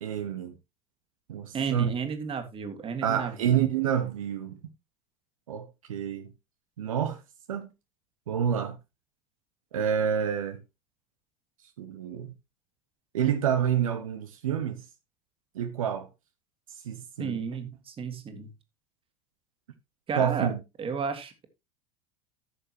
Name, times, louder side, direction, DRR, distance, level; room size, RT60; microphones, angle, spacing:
voice 1, 0.0-0.5 1.3-1.9 3.0-4.6 5.5-6.3 6.8-7.2 7.5-7.7 8.3-8.8 9.7-10.6 11.8-12.3 13.1-14.8 15.5-16.1 16.8-17.4 20.1-20.6, right 9 dB, 75° right, 1.0 m, -28 dB
voice 2, 1.5-3.5 17.2-18.5 20.1-20.5 20.8-21.5, right 6 dB, 30° right, 2.1 m, -33 dB
14.5 x 6.7 x 3.0 m
figure-of-eight pair, 75°, 18 cm